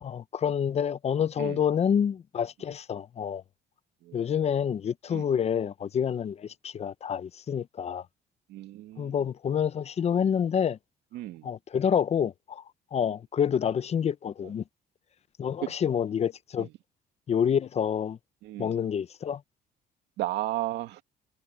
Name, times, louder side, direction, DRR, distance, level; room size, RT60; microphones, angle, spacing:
voice 1, 0.0-3.4 4.1-8.0 9.0-10.8 11.4-12.6 12.9-14.6 15.4-16.7 17.3-18.2 18.6-19.4, left 8 dB, 40° left, 0.7 m, -28 dB
voice 2, 8.5-9.2 11.1-11.5 16.6-16.7 18.4-18.8 20.2-21.0, right 15 dB, 85° right, 2.4 m, -34 dB
cardioid pair, 110°, 17 cm